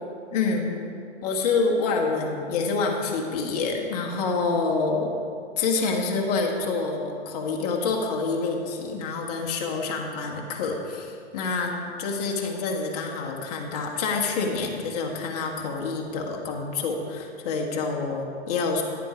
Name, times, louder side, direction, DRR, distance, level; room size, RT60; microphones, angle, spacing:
voice 1, 0.3-0.8 1.2-5.1 5.6-18.8, left 4 dB, 35° left, 1 dB, 1.3 m, -27 dB
10.5 x 7.5 x 5.0 m, 2.3 s
hypercardioid pair, 155°, 35 cm